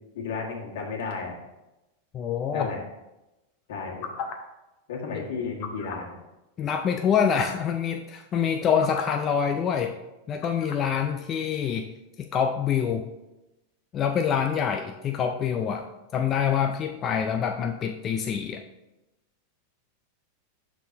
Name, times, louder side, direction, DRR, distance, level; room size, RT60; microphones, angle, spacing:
voice 1, 0.1-1.4 2.5-2.8 3.7-4.1 4.9-6.2, left 4 dB, 75° left, -1 dB, 1.8 m, -33 dB
voice 2, 2.1-2.7 6.6-9.9 10.3-11.9 12.3-13.1 13.9-15.9 16.1-18.6, left 7 dB, 25° left, 4 dB, 0.4 m, -26 dB
sound 1, 2.6-2.9 3.8-4.3 5.6-6.1 7.0-7.1 7.3-7.7 8.5-9.2 10.4-10.9, left 6 dB, 45° left, 0.9 m, -35 dB
12.0 x 4.0 x 2.8 m, 0.98 s
supercardioid pair, 155°, 0 cm